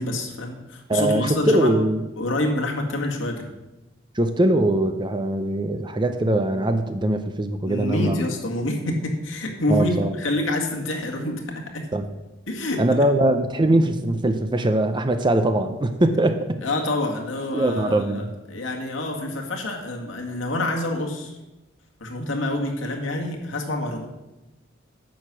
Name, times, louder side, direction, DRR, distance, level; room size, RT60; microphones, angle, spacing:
voice 1, 0.0-1.7 2.2-3.5 7.7-11.9 12.5-12.8 16.6-21.4 22.0-24.1, left 1 dB, 90° left, 1 dB, 2.0 m, -27 dB
voice 2, 0.9-2.0 4.1-8.2 9.7-10.1 11.9-12.1 12.8-16.5 17.5-18.3, right 1 dB, 25° right, 8 dB, 0.6 m, -21 dB
10.0 x 6.8 x 6.1 m, 1.0 s
head